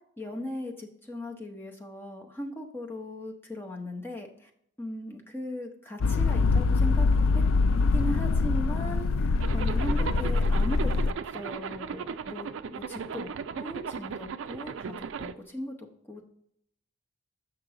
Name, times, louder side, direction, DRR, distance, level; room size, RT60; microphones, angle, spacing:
voice 1, 0.2-4.5 4.8-7.1 7.3-7.4 7.9-10.8 11.0-16.2, left 1 dB, 10° left, 1 dB, 0.8 m, -38 dB
sound 1, 6.0-11.1, left 4 dB, 75° left, 0.4 m, -24 dB
Zipper (clothing), 9.4-15.3, right 6 dB, 65° right, 0.4 m, -36 dB
6.4 x 6.0 x 3.8 m, 0.71 s
head